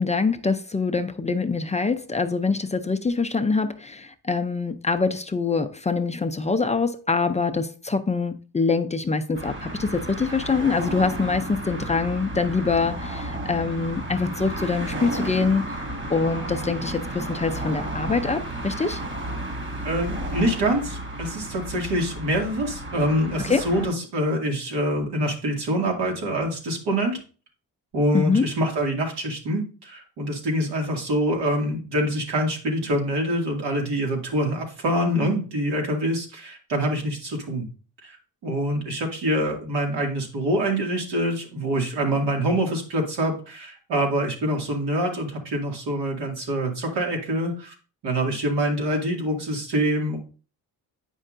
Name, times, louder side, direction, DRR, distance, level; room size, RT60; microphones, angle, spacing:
voice 1, 0.0-19.0 23.4-23.6 28.1-28.5, left 4 dB, 20° left, 0.4 m, -24 dB
sound 1, 9.3-23.9, right 1 dB, 30° right, 1.9 m, -33 dB
voice 2, 19.8-27.2 27.9-37.7 38.0-38.2 38.4-47.7 48.0-50.2, equal, 80° right, 2.3 m, -25 dB
8.9 x 5.5 x 2.5 m
cardioid pair, 115°, 40 cm